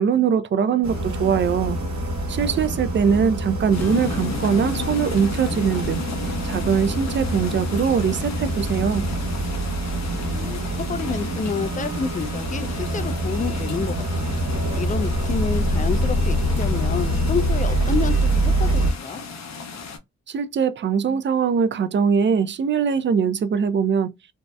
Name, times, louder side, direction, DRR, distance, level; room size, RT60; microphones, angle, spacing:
voice 1, 0.0-1.8 2.3-6.0 6.4-9.1 20.3-24.1, right 7 dB, 40° right, 0.4 m, -22 dB
sound 1, 0.8-18.9, right 1 dB, 65° right, 1.1 m, -25 dB
sound 2, 3.7-20.0, left 5 dB, 65° left, 0.6 m, -35 dB
Acoustic guitar / Strum, 3.8-8.2, right 1 dB, 5° left, 0.8 m, -46 dB
voice 2, 10.1-14.3 14.7-19.2, left 5 dB, 25° left, 0.4 m, -29 dB
2.7 x 2.0 x 2.2 m
supercardioid pair, 45°, 30 cm